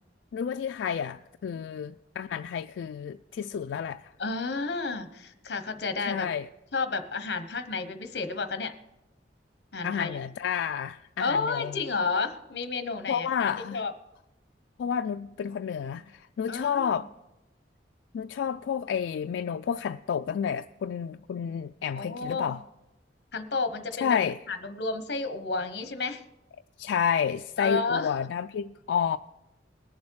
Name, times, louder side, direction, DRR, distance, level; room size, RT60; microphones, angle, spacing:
voice 1, 0.3-4.0 6.0-6.5 9.8-11.8 13.1-13.8 14.8-17.1 18.1-22.6 24.0-24.4 26.8-29.2, left 7 dB, 90° left, 0.3 m, -30 dB
voice 2, 4.2-6.3 6.7-8.7 9.7-10.2 11.2-13.9 16.5-17.1 22.0-22.6 23.3-24.2 24.5-26.2 27.6-28.1, left 4 dB, 65° left, 1.0 m, -31 dB
20.5 x 7.3 x 4.7 m
head